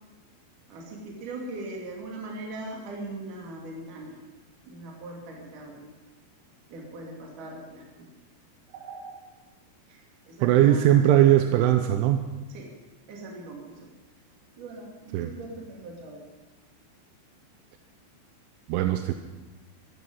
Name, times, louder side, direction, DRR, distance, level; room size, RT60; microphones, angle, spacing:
voice 1, 0.7-4.2 4.6-5.9 6.7-8.1 8.7-9.2 9.9-10.0 10.3-11.3 12.5-12.7 13.1-13.9 14.6-16.2, right 2 dB, 45° right, -1 dB, 3.8 m, -40 dB
voice 2, 10.4-12.2 15.1-15.3 18.7-19.1, right 12 dB, 85° right, 7 dB, 3.1 m, -20 dB
15.5 x 14.5 x 5.5 m, 1.2 s
omnidirectional pair, 5.6 m